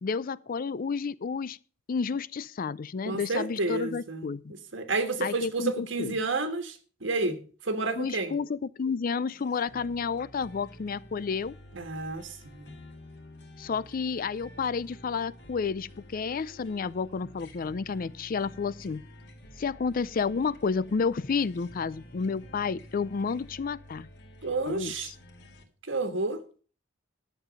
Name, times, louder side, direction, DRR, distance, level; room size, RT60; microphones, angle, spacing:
voice 1, 0.0-1.6 1.9-4.4 5.2-6.1 8.0-11.5 13.6-19.0 19.6-24.1 24.7-24.9, left 5 dB, 45° left, 0.4 m, -31 dB
voice 2, 3.1-4.2 4.7-8.3 11.7-12.7 24.4-25.1 25.9-26.4, right 3 dB, 65° right, 1.5 m, -30 dB
sound 1, 9.3-25.6, equal, 60° left, 2.0 m, -50 dB
11.5 x 7.5 x 5.2 m
head